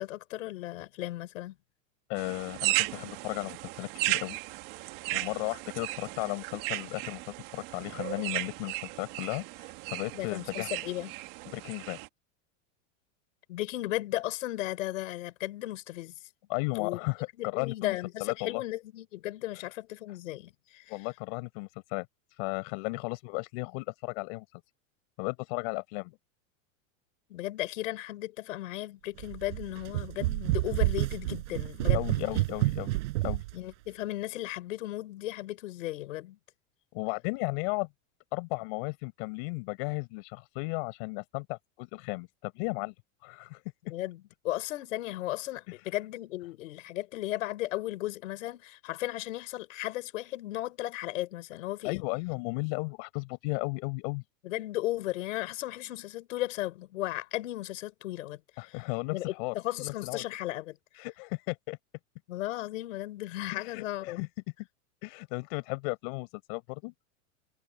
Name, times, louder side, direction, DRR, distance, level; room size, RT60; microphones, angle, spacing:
voice 1, 0.0-1.5 10.1-11.1 13.5-16.1 16.7-17.0 17.4-21.0 27.3-32.4 33.5-36.4 43.9-52.0 54.4-58.8 59.1-61.1 62.3-64.2, left 16 dB, 75° left, 5.1 m, -35 dB
voice 2, 2.1-4.4 5.1-7.2 7.5-10.7 11.5-12.0 16.5-18.6 20.9-22.1 22.4-24.4 25.2-26.2 31.9-33.0 33.2-33.4 36.9-37.9 38.3-42.9 43.2-43.6 51.8-54.2 58.6-60.2 61.0-61.8 63.5-64.3 65.0-66.9, left 31 dB, 50° left, 6.1 m, -35 dB
sound 1, 2.2-12.1, right 22 dB, 45° right, 1.8 m, -35 dB
sound 2, 29.2-33.5, right 19 dB, 60° right, 5.0 m, -29 dB
supercardioid pair, 165°, 39 cm